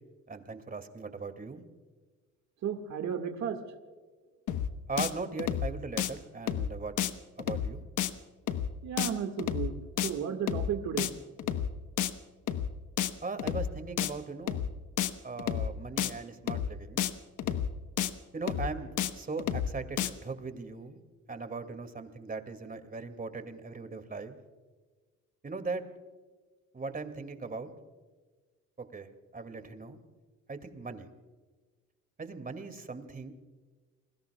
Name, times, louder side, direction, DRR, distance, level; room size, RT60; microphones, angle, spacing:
voice 1, 0.3-1.6 4.9-6.9 7.4-7.8 13.2-14.6 15.2-17.0 18.3-21.0 21.3-24.4 25.4-25.8 26.7-27.7 28.8-30.0 30.5-31.1 32.2-33.3, right 4 dB, 30° right, 8 dB, 2.3 m, -39 dB
voice 2, 2.6-3.6 3.8-3.9 8.8-11.1, right 8 dB, 65° right, 5 dB, 1.9 m, -34 dB
sound 1, 4.5-4.7 5.0-5.1 5.4-5.7 6.0-6.1 6.5-6.7 7.0-7.1 7.4-7.7 8.0-8.1 8.5-8.7 9.0-9.1 9.4-9.7 10.0-10.1 10.5-10.7 11.0-11.1 11.4-11.7 12.0-12.1 12.5-12.7 13.0-13.1 13.4-13.7 14.0-14.1 14.5-14.7 15.0-15.1 15.4-15.7 16.0-16.1 16.5-16.7 17.0-17.1 17.4-17.7 18.0-18.1 18.5-18.7 19.0-19.1 19.4-19.7 20.0-20.1, left 10 dB, 85° left, 1.2 m, -30 dB
29.5 x 20.5 x 2.3 m, 1.4 s
cardioid pair, 90°, 30 cm